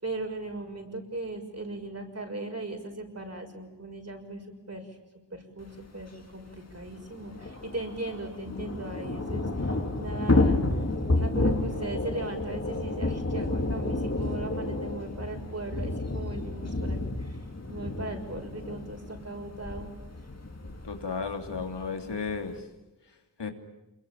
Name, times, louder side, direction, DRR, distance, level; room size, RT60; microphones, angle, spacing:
voice 1, 0.0-4.4 4.7-4.8 5.3-10.6 11.1-17.4 17.7-19.9, right 2 dB, 35° right, 4 dB, 6.3 m, -38 dB
Thunder / Rain, 6.0-6.1 6.3-6.4 6.7-22.6, left 2 dB, 35° left, 3.5 m, -31 dB
voice 2, 20.8-22.5 23.4-23.5, left 5 dB, 75° left, 5 dB, 3.0 m, -33 dB
27.5 x 22.5 x 8.8 m, 1.0 s
wide cardioid pair, 65°, 42 cm